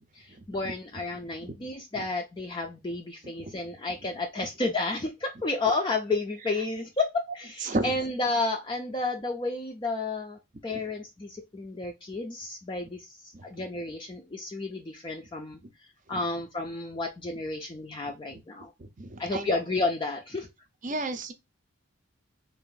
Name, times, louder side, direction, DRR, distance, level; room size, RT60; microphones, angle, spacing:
voice 1, 0.1-7.1 7.3-18.7 19.2-20.5, left 3 dB, 20° left, 0.4 m, -31 dB
voice 2, 1.4-2.0 3.4-3.5 7.6-7.9 10.7-10.8 13.3-13.6 16.1-16.2 18.8-19.6 20.8-21.3, right 2 dB, 35° right, 0.5 m, -34 dB
3.6 x 2.5 x 3.7 m
head